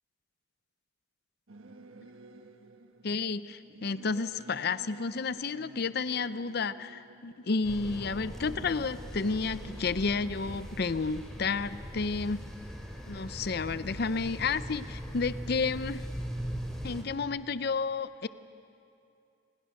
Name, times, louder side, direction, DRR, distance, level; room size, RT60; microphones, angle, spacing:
Singing / Musical instrument, 1.5-13.3, right 2 dB, 75° right, 1.2 m, -52 dB
voice 1, 3.0-12.4 13.1-16.0 16.8-18.3, left 4 dB, 50° left, 14 dB, 0.5 m, -31 dB
sound 1, 7.6-17.0, equal, ahead, 2.8 m, -40 dB
29.0 x 21.5 x 6.5 m, 2.6 s
head